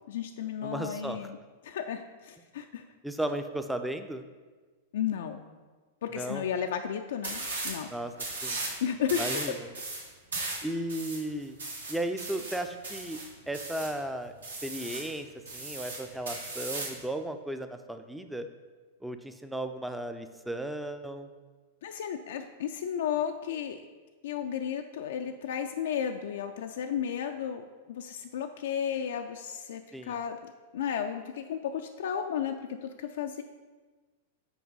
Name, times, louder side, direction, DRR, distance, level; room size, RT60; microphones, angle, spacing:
voice 1, 0.1-1.4 1.6-2.8 4.9-5.4 6.0-7.9 8.8-9.4 21.8-23.8 24.2-33.4, left 8 dB, 60° left, 5 dB, 0.3 m, -33 dB
voice 2, 0.6-1.2 3.0-4.2 6.1-6.4 7.9-8.1 8.4-8.6 9.2-9.7 10.6-11.6 11.9-13.2 13.5-14.3 14.6-15.3 15.5-18.5 19.0-21.3 29.9-30.2, right 1 dB, 5° right, 8 dB, 0.4 m, -35 dB
sound 1, 7.2-7.8 8.2-8.8 9.1-14.0 14.4-15.1 15.5-17.0, right 2 dB, 75° right, 1.3 m, -37 dB
6.1 x 4.5 x 5.2 m, 1.4 s
figure-of-eight pair, 95°, 0 cm